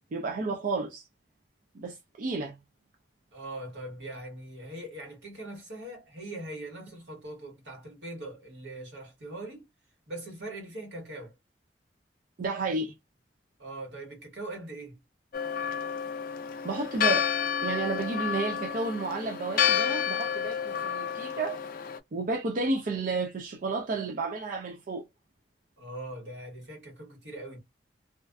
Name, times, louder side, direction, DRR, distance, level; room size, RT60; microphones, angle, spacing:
voice 1, 0.1-1.1 1.7-2.6 12.4-12.9 16.6-17.3 17.6-21.6 22.1-25.0, right 3 dB, 50° right, 0.4 m, -31 dB
voice 2, 3.3-9.7 10.1-11.3 13.6-15.0 25.8-27.6, right 1 dB, 75° right, 1.4 m, -41 dB
Church bell, 15.3-22.0, left 8 dB, 55° left, 0.4 m, -30 dB
2.4 x 2.4 x 2.2 m
head